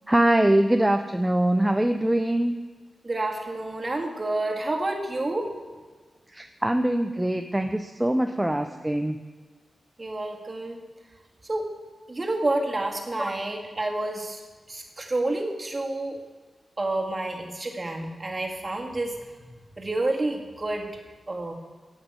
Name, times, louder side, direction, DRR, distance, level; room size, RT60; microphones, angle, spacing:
voice 1, 0.1-2.5 6.3-9.2 13.2-13.3, right 1 dB, 10° right, 6 dB, 0.5 m, -23 dB
voice 2, 3.0-5.5 10.0-10.8 11.4-11.7 12.1-14.4 14.7-16.2 16.8-19.2 19.4-20.9 21.3-21.5, right 2 dB, 25° right, 1 dB, 1.9 m, -29 dB
9.1 x 8.1 x 8.0 m, 1.4 s
wide cardioid pair, 100°, 0 cm